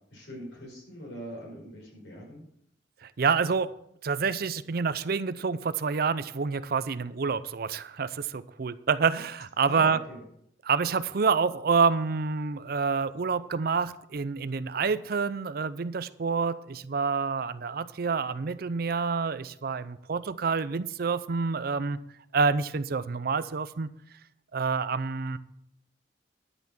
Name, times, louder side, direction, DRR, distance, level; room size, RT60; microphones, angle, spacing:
voice 1, 0.1-2.4 9.6-10.2, equal, 85° left, -1 dB, 4.9 m, -42 dB
voice 2, 3.0-3.7 4.0-10.0 10.6-22.0 22.3-23.9 24.5-25.4, right 5 dB, 55° right, 15 dB, 0.5 m, -28 dB
11.0 x 6.0 x 7.0 m, 0.74 s
head